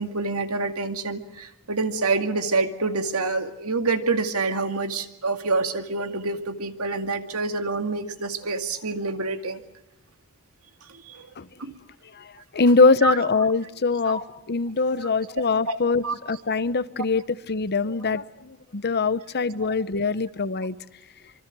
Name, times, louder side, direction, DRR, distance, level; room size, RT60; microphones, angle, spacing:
voice 1, 0.0-9.6 10.9-11.3 11.6-11.8 13.0-13.2 14.1-14.2 15.0-15.1 15.7-15.8 16.0-16.2 17.0-17.1, right 3 dB, 75° right, 8 dB, 2.2 m, -27 dB
voice 2, 12.5-14.2 14.5-17.2 17.5-18.2 18.7-20.7, left 4 dB, 50° left, 15 dB, 0.9 m, -22 dB
26.0 x 24.5 x 6.1 m, 0.88 s
head